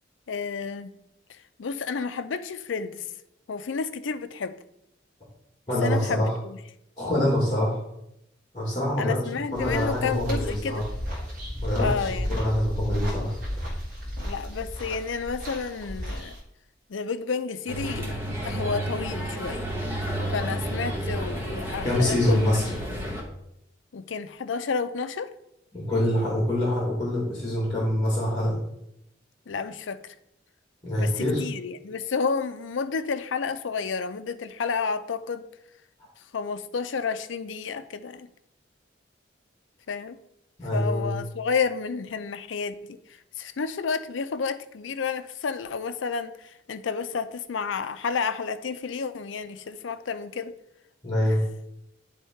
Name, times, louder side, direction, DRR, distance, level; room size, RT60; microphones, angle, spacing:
voice 1, 0.3-0.9 1.3-3.1 3.5-4.6 5.8-6.6 9.0-10.9 11.8-12.4 14.2-16.4 16.9-19.7 20.3-22.4 23.9-25.3 29.5-30.1 31.0-35.5 36.3-38.3 39.9-40.2 40.7-50.5 51.3-51.4, left 5 dB, 80° left, 11 dB, 0.5 m, -31 dB
voice 2, 5.7-6.3 7.0-7.8 8.5-9.2 9.5-10.8 11.6-13.3 21.8-22.6 25.7-28.6 30.8-31.4 40.6-41.1 51.0-51.4, left 1 dB, 20° left, -5 dB, 2.0 m, -25 dB
sound 1, 9.5-16.4, equal, 45° right, 2.1 m, -33 dB
sound 2, 17.7-23.2, right 1 dB, 10° right, 1.4 m, -31 dB
10.0 x 3.6 x 4.4 m, 0.81 s
head